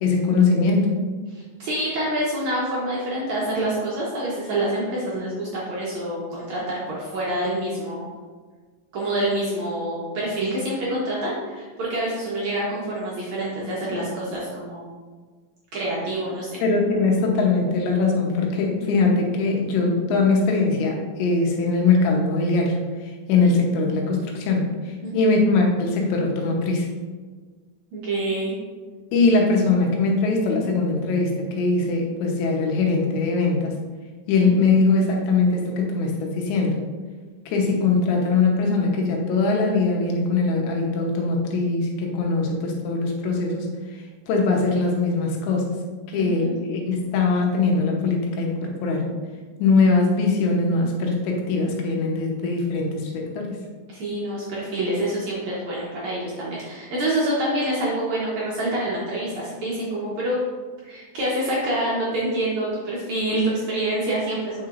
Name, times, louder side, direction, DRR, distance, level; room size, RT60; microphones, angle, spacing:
voice 1, 0.0-1.0 16.6-26.9 29.1-33.8 34.3-36.8 37.5-43.7 43.9-45.8 46.1-49.1 49.6-53.6, left 3 dB, 85° left, 0 dB, 3.3 m, -21 dB
voice 2, 1.3-8.1 8.9-14.9 15.7-16.6 25.0-25.4 27.9-28.5 46.1-46.5 53.9-60.4 60.8-64.7, right 1 dB, 70° right, -6 dB, 1.7 m, -27 dB
8.7 x 5.8 x 2.5 m, 1.5 s
omnidirectional pair, 5.0 m